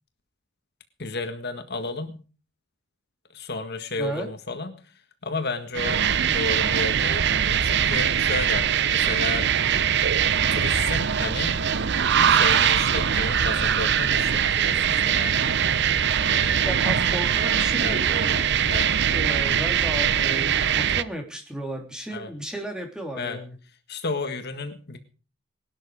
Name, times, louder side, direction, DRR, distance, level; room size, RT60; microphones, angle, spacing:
voice 1, 1.0-2.2 3.3-4.9 5.2-9.5 10.5-11.6 12.3-15.7 16.3-16.7 17.8-18.0 18.7-18.9 22.1-22.3 23.2-23.4 23.9-25.0, left 3 dB, 50° left, 7 dB, 1.7 m, -32 dB
sound 1, 5.7-21.0, right 8 dB, 55° right, 0.8 m, -22 dB
voice 2, 16.6-18.5 19.1-23.5, right 1 dB, 5° right, 2 dB, 3.3 m, -34 dB
20.0 x 12.0 x 5.0 m, 0.38 s
head